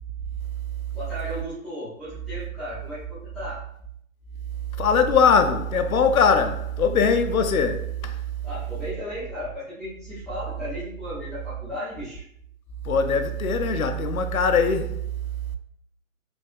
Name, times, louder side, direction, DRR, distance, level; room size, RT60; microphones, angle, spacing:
voice 1, 0.9-3.6 8.4-12.2, left 1 dB, ahead, 0.6 m, -35 dB
voice 2, 4.8-8.2 12.8-15.0, left 5 dB, 85° left, 0.6 m, -21 dB
3.4 x 3.4 x 2.4 m
hypercardioid pair, 145°, 42 cm